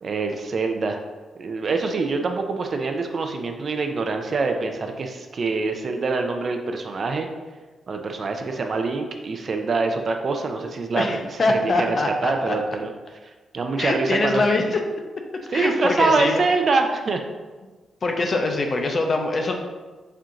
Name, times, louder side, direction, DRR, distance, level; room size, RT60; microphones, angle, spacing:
voice 1, 0.0-1.0 1.4-7.3 7.9-12.9 13.5-14.4 15.5-17.2, right 3 dB, 45° right, 4 dB, 0.4 m, -25 dB
voice 2, 11.0-12.6 13.8-14.8 15.5-16.4 18.0-19.5, left 2 dB, 40° left, 3 dB, 0.5 m, -23 dB
4.3 x 2.5 x 3.7 m, 1.3 s
cardioid pair, 115°, 0 cm